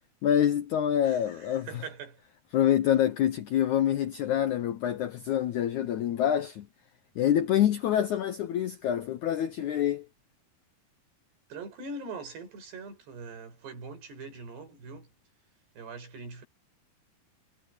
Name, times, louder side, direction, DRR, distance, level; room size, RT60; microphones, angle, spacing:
voice 1, 0.2-1.8 2.5-6.7 7.1-10.1, left 10 dB, 80° left, 1.7 m, -26 dB
voice 2, 1.0-2.2 11.5-15.1 15.8-16.5, right 3 dB, 85° right, 7.8 m, -42 dB
omnidirectional pair, 4.7 m